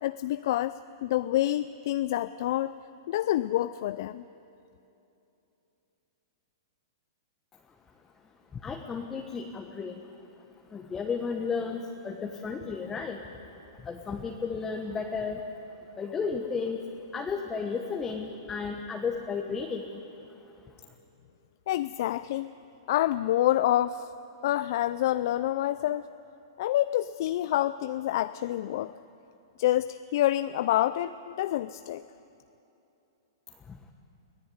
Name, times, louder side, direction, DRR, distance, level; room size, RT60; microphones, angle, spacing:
voice 1, 0.0-2.7 3.1-4.2 21.7-22.5 22.9-24.1 24.4-26.0 26.6-28.9 29.6-32.0, left 13 dB, 55° left, 14 dB, 0.5 m, -27 dB
voice 2, 8.5-10.0 10.7-13.3 13.8-15.4 16.0-16.8 17.1-20.0 33.7-33.8, left 5 dB, 15° left, 2 dB, 1.3 m, -33 dB
24.0 x 15.5 x 9.5 m, 2.9 s
hypercardioid pair, 135°, 2 cm